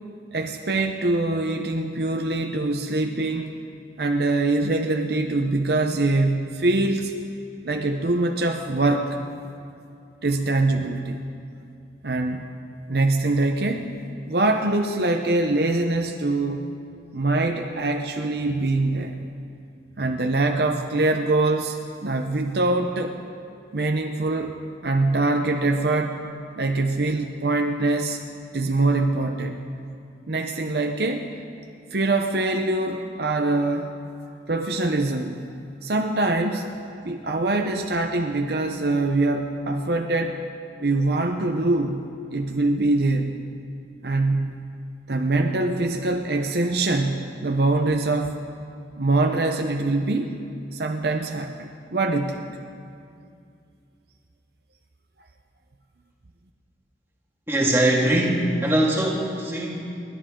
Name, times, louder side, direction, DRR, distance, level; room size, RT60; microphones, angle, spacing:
voice 1, 0.3-3.5 4.0-7.1 7.6-9.2 10.2-11.2 12.0-12.5 12.9-13.9 14.3-16.7 17.1-19.2 20.0-23.2 23.7-24.6 24.8-26.2 26.6-28.2 28.5-29.6 30.3-31.3 31.9-33.9 34.5-35.4 35.8-36.7 37.0-40.3 40.8-42.0 42.3-43.4 44.0-44.6 45.1-48.4 49.0-50.4 50.7-52.4, right 2 dB, 60° right, 4 dB, 0.8 m, -23 dB
voice 2, 57.5-59.8, right 1 dB, 15° right, -3 dB, 2.0 m, -22 dB
29.5 x 11.5 x 3.8 m, 2.4 s
head